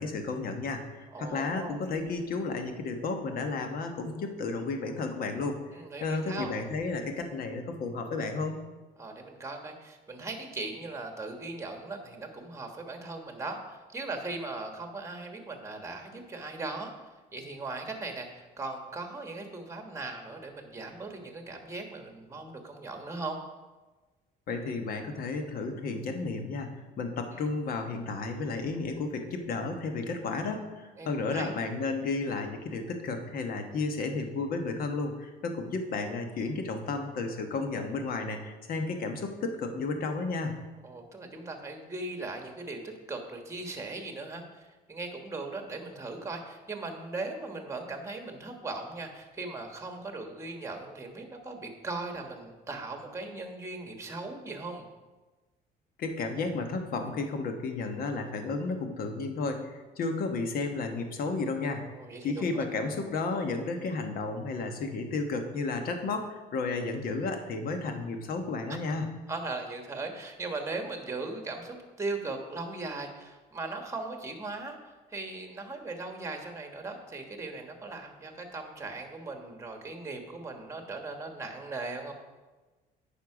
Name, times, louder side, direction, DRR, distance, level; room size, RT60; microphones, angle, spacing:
voice 1, 0.0-5.6 6.0-8.6 24.5-26.7 27.0-40.5 56.0-69.1, left 3 dB, 60° left, 5 dB, 1.2 m, -32 dB
voice 2, 1.1-1.8 5.7-6.5 9.0-16.9 17.3-23.4 27.3-27.4 31.0-31.6 40.8-54.8 61.8-62.7 68.7-68.8 69.3-82.1, right 3 dB, 15° right, 4 dB, 1.4 m, -39 dB
9.0 x 5.6 x 4.9 m, 1.2 s
cardioid pair, 110°, 17 cm